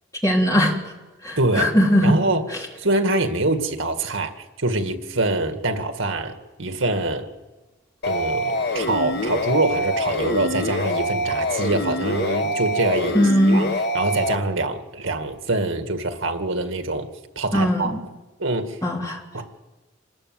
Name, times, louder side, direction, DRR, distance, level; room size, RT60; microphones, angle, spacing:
voice 1, 0.2-0.8 1.2-2.2 13.1-13.7 17.5-18.0 18.8-19.2, equal, 15° left, -1 dB, 3.5 m, -19 dB
voice 2, 1.4-1.7 2.0-2.4 2.8-7.3 8.1-13.2 13.5-13.7 13.9-17.1 17.4-18.0 18.4-18.8 19.3-19.4, right 2 dB, 80° right, 7 dB, 1.9 m, -24 dB
sound 1, 8.0-14.3, left 1 dB, 55° left, 1.1 m, -25 dB
27.0 x 19.0 x 7.8 m, 1.2 s
head